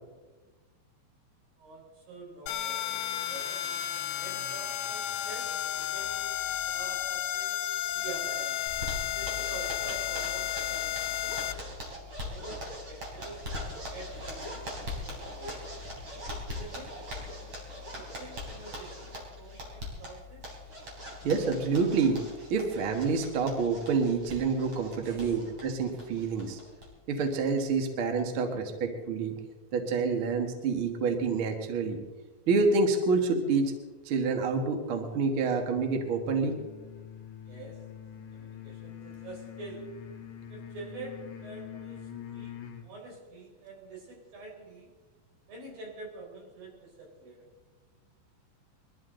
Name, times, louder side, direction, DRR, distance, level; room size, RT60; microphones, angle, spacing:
voice 1, 1.6-6.3 6.6-7.6 7.9-8.6 9.1-11.4 12.2-12.6 12.9-13.5 13.9-15.6 16.5-16.9 17.2-17.5 17.9-20.5 25.0-25.4 37.4-37.8 38.3-39.9 40.5-42.6 42.8-45.0 45.5-47.5, right 3 dB, 55° right, -3 dB, 6.3 m, -46 dB
sound 1, 2.5-11.5, left 12 dB, 75° left, 2.3 m, -33 dB
Zipper (clothing), 8.7-26.9 27.2-27.3 27.6-27.7 28.0-28.4, left 1 dB, 30° right, 4.0 m, -41 dB
voice 2, 21.2-22.2 22.5-26.6 27.1-29.4 29.7-32.0 32.5-33.7 34.0-36.6, right 4 dB, 75° right, 4 dB, 1.2 m, -27 dB
sound 2, 35.5-42.9, left 9 dB, 55° left, 2.4 m, -45 dB
22.0 x 14.0 x 3.9 m, 1.2 s
omnidirectional pair, 5.2 m